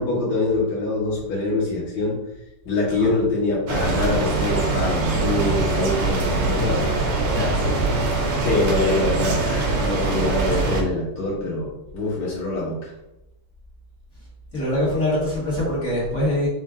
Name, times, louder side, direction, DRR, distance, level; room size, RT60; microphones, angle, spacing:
voice 1, 0.0-2.2 2.6-6.9 8.4-12.9, left 2 dB, 75° left, -7 dB, 2.6 m, -24 dB
sound 1, 3.7-10.8, right 3 dB, 70° right, 0.7 m, -23 dB
voice 2, 6.4-6.9 7.2-7.8 14.5-16.5, left 1 dB, 40° left, -8 dB, 2.2 m, -24 dB
6.2 x 3.3 x 2.5 m, 0.89 s
omnidirectional pair, 2.3 m